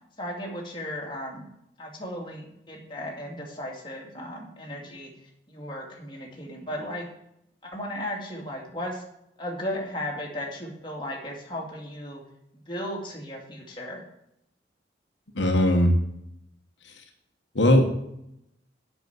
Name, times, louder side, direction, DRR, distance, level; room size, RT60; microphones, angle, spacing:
voice 1, 0.2-1.4 1.8-5.1 5.5-7.1 7.6-9.0 9.4-12.2 12.7-14.0, left 1 dB, 25° left, -1 dB, 2.3 m, -35 dB
voice 2, 15.3-15.9 17.5-18.0, left 1 dB, 80° left, 3 dB, 1.4 m, -19 dB
8.1 x 6.3 x 7.9 m, 0.79 s
head